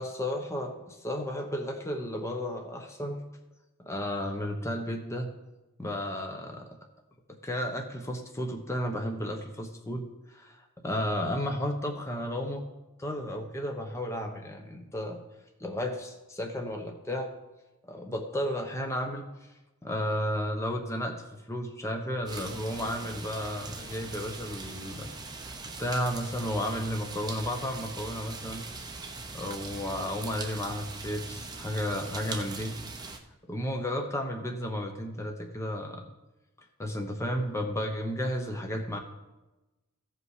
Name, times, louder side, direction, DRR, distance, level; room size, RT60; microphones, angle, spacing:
voice 1, 0.0-3.2 3.8-5.3 5.8-6.7 7.3-12.6 13.0-15.2 15.6-17.3 17.8-19.5 19.8-25.5 25.8-28.7 29.3-32.8 33.5-36.0 36.8-39.0, equal, 15° left, 3 dB, 0.9 m, -33 dB
sound 1, 22.3-33.2, right 3 dB, 20° right, 0.8 m, -41 dB
15.0 x 5.5 x 4.9 m, 1.1 s
head